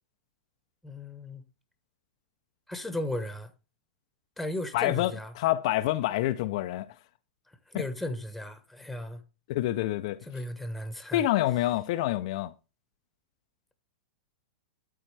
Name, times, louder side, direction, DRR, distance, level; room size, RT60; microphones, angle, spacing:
voice 1, 0.8-1.4 2.7-3.5 4.4-5.3 7.7-9.2 10.2-11.2, left 1 dB, ahead, 1.2 m, -35 dB
voice 2, 4.7-6.9 7.7-7.8 9.5-10.2 11.1-12.5, left 15 dB, 60° left, 0.5 m, -27 dB
13.0 x 4.3 x 3.3 m
hypercardioid pair, 120°, 4 cm